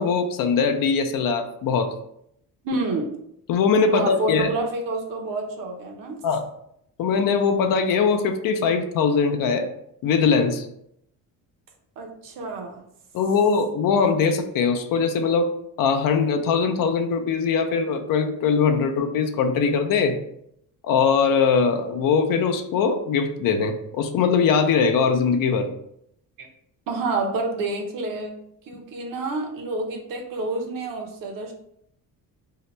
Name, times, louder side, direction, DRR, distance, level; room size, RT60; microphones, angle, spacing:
voice 1, 0.0-1.9 3.5-4.5 6.2-6.4 7.0-9.7 10.0-10.7 13.1-15.5 15.8-20.2 20.8-25.7, left 5 dB, 60° left, 6 dB, 0.5 m, -21 dB
voice 2, 2.6-3.1 3.9-6.2 12.0-12.8 26.4-26.5 26.9-28.4 28.7-31.5, right 2 dB, 60° right, 2 dB, 0.7 m, -28 dB
2.8 x 2.1 x 4.1 m, 0.75 s
cardioid pair, 145°, 37 cm